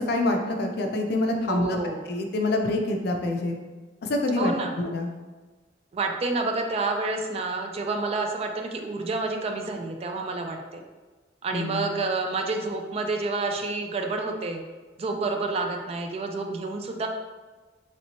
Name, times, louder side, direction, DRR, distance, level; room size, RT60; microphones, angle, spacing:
voice 1, 0.0-1.8 2.1-3.6 4.1-5.1 11.5-12.1, left 2 dB, 60° left, 3 dB, 0.4 m, -26 dB
voice 2, 1.5-2.0 4.4-4.8 5.9-10.8 11.4-14.6 15.0-17.1, right 3 dB, 35° right, 3 dB, 0.3 m, -29 dB
3.1 x 2.9 x 2.8 m, 1.3 s
head